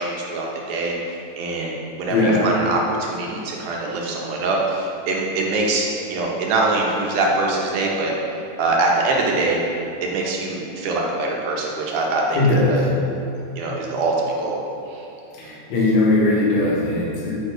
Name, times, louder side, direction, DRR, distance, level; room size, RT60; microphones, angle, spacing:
voice 1, 0.0-1.7 2.0-8.1 8.6-9.6 10.0-12.4 12.7-12.9 13.6-14.6 14.9-15.0 15.4-15.5, right 2 dB, 75° right, -2 dB, 2.4 m, -23 dB
voice 2, 2.1-2.5 12.3-12.8 15.4-17.4, left 2 dB, 60° left, -6 dB, 2.6 m, -19 dB
7.1 x 4.7 x 4.9 m, 2.9 s
omnidirectional pair, 3.8 m